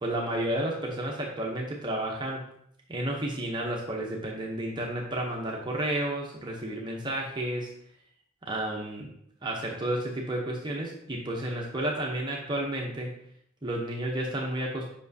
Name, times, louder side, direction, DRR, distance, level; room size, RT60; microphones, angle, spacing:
voice 1, 0.0-2.5 2.9-7.7 8.4-9.1 9.4-13.2 13.6-14.9, right 1 dB, 25° right, -1 dB, 0.8 m, -31 dB
7.2 x 5.5 x 2.7 m, 0.70 s
head